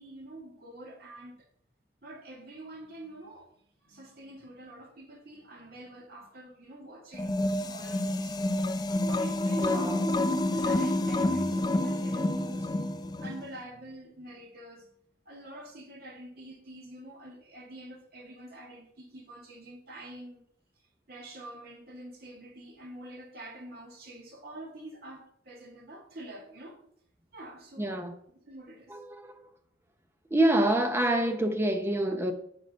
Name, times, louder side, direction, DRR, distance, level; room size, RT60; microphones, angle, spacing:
voice 1, 0.0-1.5 2.0-8.4 9.0-14.9 15.3-20.4 21.1-26.8 27.3-27.9 28.4-29.0, right 1 dB, 55° right, 1.9 m, -46 dB
sound 1, 7.1-13.5, left 1 dB, 20° left, 0.4 m, -28 dB
voice 2, 9.6-10.0 27.8-28.1 28.9-29.4 30.3-32.3, right 1 dB, 15° right, 0.7 m, -27 dB
7.7 x 4.8 x 5.4 m
head